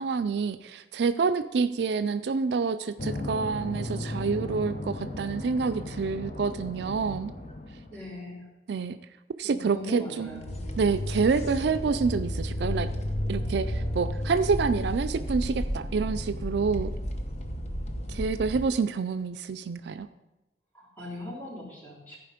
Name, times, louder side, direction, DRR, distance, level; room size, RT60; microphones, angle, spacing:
voice 1, 0.0-7.3 8.7-9.0 9.4-10.3 10.8-12.9 13.3-16.9 18.1-20.1, right 5 dB, 70° right, 11 dB, 0.4 m, -27 dB
sound 1, 3.0-8.1 10.2-18.7, left 1 dB, 40° left, 0.9 m, -33 dB
voice 2, 7.9-8.5 9.4-10.6 20.7-22.2, left 1 dB, 10° left, -6 dB, 3.5 m, -40 dB
14.5 x 4.9 x 5.1 m, 1.0 s
head